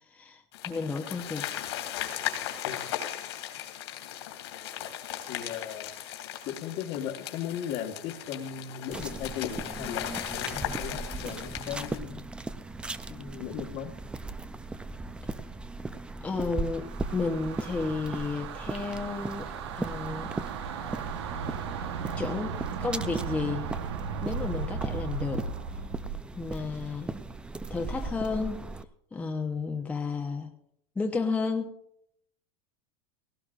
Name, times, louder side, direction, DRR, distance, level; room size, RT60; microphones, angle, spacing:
voice 1, 0.1-1.5 16.2-19.5 19.8-20.3 22.2-23.7 24.2-25.5 26.4-27.2 27.7-28.7 29.1-30.5 31.0-31.7, left 4 dB, 10° left, 2 dB, 0.9 m, -32 dB
sound 1, 0.5-12.0, left 11 dB, 85° left, 2.7 m, -37 dB
voice 2, 5.3-5.9 6.4-12.3 13.1-14.0, left 9 dB, 50° left, 5 dB, 1.4 m, -37 dB
sound 2, 8.9-28.8, right 3 dB, 5° right, 0.4 m, -38 dB
sound 3, 16.5-26.3, right 6 dB, 80° right, 1.1 m, -36 dB
19.0 x 17.5 x 2.5 m, 0.70 s
supercardioid pair, 140°, 14 cm